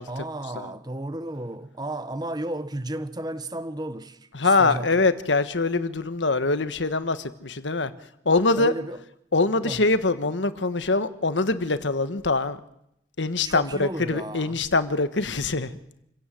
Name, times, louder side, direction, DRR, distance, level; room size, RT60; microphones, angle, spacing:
voice 1, 0.1-5.0 8.6-9.0 9.6-9.8 13.4-14.6, right 1 dB, 20° right, 1.3 m, -33 dB
voice 2, 4.3-7.9 8.2-8.7 9.3-12.6 13.2-15.7, left 3 dB, 80° left, 1.4 m, -23 dB
28.5 x 17.0 x 7.8 m
head